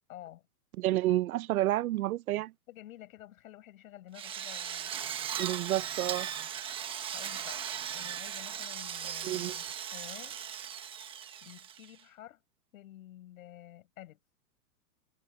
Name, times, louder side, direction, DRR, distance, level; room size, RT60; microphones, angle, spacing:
voice 1, 0.1-0.4 2.7-4.9 5.6-5.8 7.1-7.6 7.9-10.4 11.4-12.4 12.7-14.2, left 13 dB, 60° left, 6.4 m, -51 dB
voice 2, 0.8-2.5 5.4-6.3 9.0-9.6, right 15 dB, 65° right, 1.0 m, -30 dB
Drill, 4.1-12.0, right 9 dB, 10° right, 1.1 m, -38 dB
supercardioid pair, 170°, 46 cm